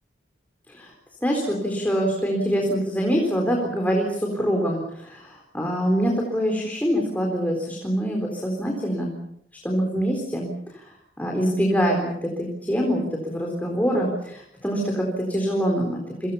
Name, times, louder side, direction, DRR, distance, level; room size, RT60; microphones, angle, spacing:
voice 1, 1.2-9.2 9.6-16.3, equal, 10° left, 0 dB, 4.1 m, -25 dB
30.0 x 25.0 x 5.8 m, 0.77 s
head